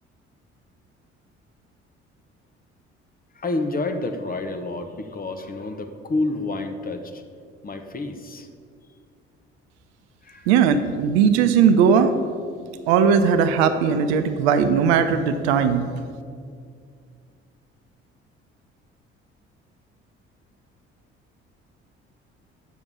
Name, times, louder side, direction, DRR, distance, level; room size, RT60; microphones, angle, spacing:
voice 1, 3.3-7.2 7.6-8.5 10.2-10.5, left 2 dB, 25° left, 6 dB, 1.0 m, -29 dB
voice 2, 10.5-12.1 12.9-15.8, right 7 dB, 65° right, 10 dB, 0.7 m, -18 dB
8.3 x 7.0 x 7.0 m, 2.2 s
figure-of-eight pair, 50°, 34 cm